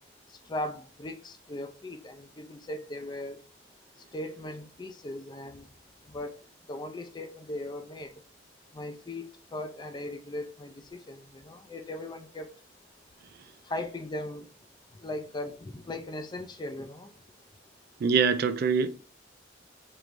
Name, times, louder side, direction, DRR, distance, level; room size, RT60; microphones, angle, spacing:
voice 1, 0.5-3.4 4.1-5.7 6.1-6.4 6.7-8.1 8.7-9.2 9.5-12.5 13.7-14.4 15.0-17.1, left 1 dB, 25° left, 0.4 m, -38 dB
voice 2, 18.0-18.9, right 5 dB, 55° right, 0.3 m, -24 dB
4.6 x 3.1 x 2.5 m
head